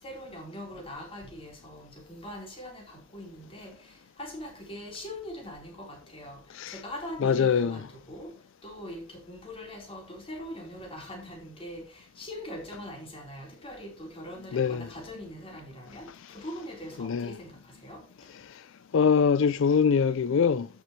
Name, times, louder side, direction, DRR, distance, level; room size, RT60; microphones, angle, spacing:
voice 1, 0.0-6.4 6.7-8.3 8.6-18.1, equal, 25° left, 4.2 m, -42 dB
voice 2, 6.5-6.8 7.2-7.8 14.5-14.9 16.1-16.4 17.0-17.4 18.3-18.6 18.9-20.7, left 6 dB, 65° left, 0.4 m, -24 dB
13.5 x 6.9 x 3.2 m
head